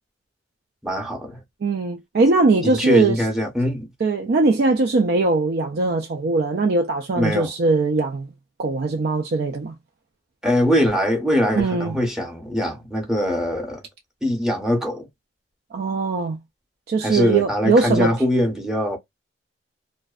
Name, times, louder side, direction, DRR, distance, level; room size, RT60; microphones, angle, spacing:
voice 1, 0.8-1.4 2.6-3.9 7.2-7.5 10.4-13.8 14.2-15.1 17.0-19.0, equal, 5° right, 0.7 m, -22 dB
voice 2, 1.6-3.2 4.0-8.3 8.6-9.7 11.6-12.0 15.7-16.4 16.9-18.1, right 3 dB, 55° right, 0.4 m, -20 dB
2.5 x 2.1 x 2.3 m
head